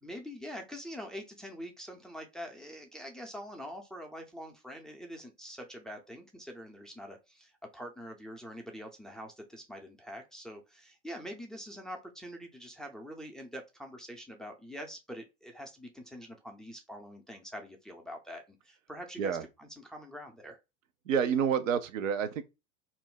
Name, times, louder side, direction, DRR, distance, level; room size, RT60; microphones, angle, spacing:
voice 1, 0.0-20.6, equal, ahead, 0.4 m, -45 dB
voice 2, 21.1-22.4, right 7 dB, 90° right, 0.6 m, -28 dB
2.5 x 2.0 x 3.6 m
hypercardioid pair, 90°, 38 cm